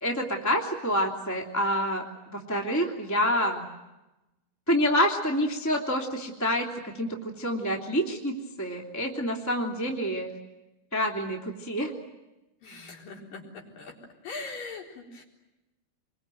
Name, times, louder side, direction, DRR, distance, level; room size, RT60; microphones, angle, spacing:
voice 1, 0.0-3.6 4.7-10.3 10.9-11.9, equal, 5° left, 1 dB, 1.6 m, -27 dB
voice 2, 12.6-13.4 13.8-13.9 14.2-15.2, left 3 dB, 45° left, 0 dB, 5.4 m, -40 dB
27.0 x 23.0 x 9.2 m, 0.99 s
omnidirectional pair, 5.5 m